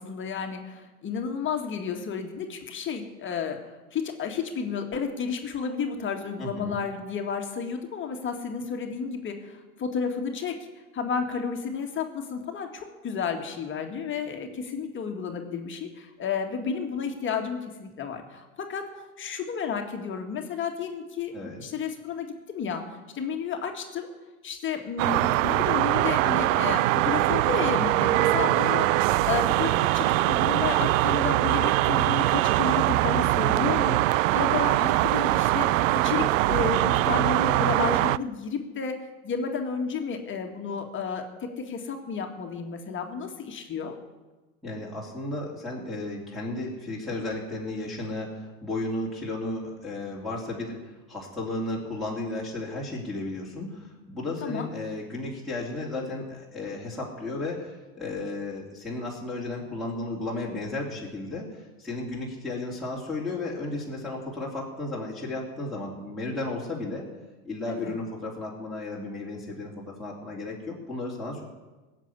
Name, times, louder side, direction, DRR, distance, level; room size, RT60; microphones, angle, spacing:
voice 1, 0.0-10.6 10.9-24.1 24.4-28.9 29.3-35.7 36.0-38.9 39.2-44.0 54.4-54.7 67.7-68.0, left 6 dB, 25° left, 4 dB, 2.0 m, -32 dB
voice 2, 6.4-6.8 21.3-21.6 28.4-28.8 44.6-67.1 67.4-71.4, left 2 dB, ahead, -6 dB, 3.2 m, -34 dB
sound 1, 25.0-38.2, right 16 dB, 60° right, 0.5 m, -23 dB
16.5 x 7.7 x 9.8 m, 1.2 s
hypercardioid pair, 110°, 44 cm